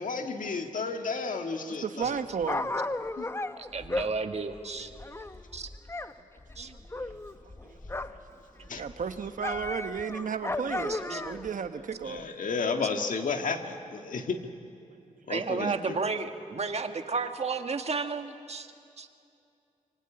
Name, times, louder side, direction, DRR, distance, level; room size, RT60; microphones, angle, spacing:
voice 1, 0.0-2.2 3.2-3.3 8.7-8.8 12.0-14.4 15.3-16.0, left 4 dB, 75° left, 5 dB, 1.8 m, -32 dB
voice 2, 1.7-2.8 6.6-7.8 8.1-8.2 8.5-12.3, right 6 dB, 75° right, 9 dB, 1.2 m, -35 dB
Dog, 2.0-6.1 6.4-8.3 8.6-11.5 12.2-12.3, left 2 dB, 20° left, 0.8 m, -35 dB
voice 3, 3.7-4.9 5.5-5.7 6.6-6.7 10.9-11.2 15.3-18.7 19.0-19.1, right 4 dB, 50° right, 7 dB, 1.6 m, -32 dB
26.5 x 23.5 x 8.8 m, 2.6 s
wide cardioid pair, 95°, 14 cm